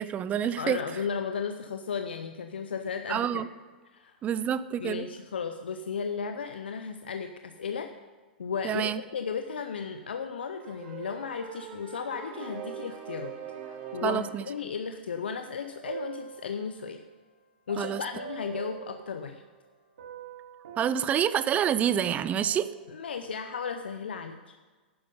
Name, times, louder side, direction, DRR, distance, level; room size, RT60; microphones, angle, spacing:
voice 1, 0.0-0.8 3.1-3.5 4.2-5.1 8.6-9.0 14.0-14.4 17.8-18.0 20.8-22.7, right 9 dB, 25° right, 15 dB, 0.5 m, -27 dB
voice 2, 0.6-3.4 3.9-4.2 4.8-7.9 8.4-13.4 13.6-17.0 17.7-19.4 22.9-24.4, left 6 dB, 75° left, 7 dB, 0.7 m, -35 dB
sound 1, 10.6-14.6, right 8 dB, 45° right, 1.9 m, -42 dB
sound 2, 15.6-17.0 17.7-19.7 20.0-22.9, right 7 dB, 70° right, 1.7 m, -44 dB
12.0 x 9.7 x 5.3 m, 1.4 s
hypercardioid pair, 105°, 6 cm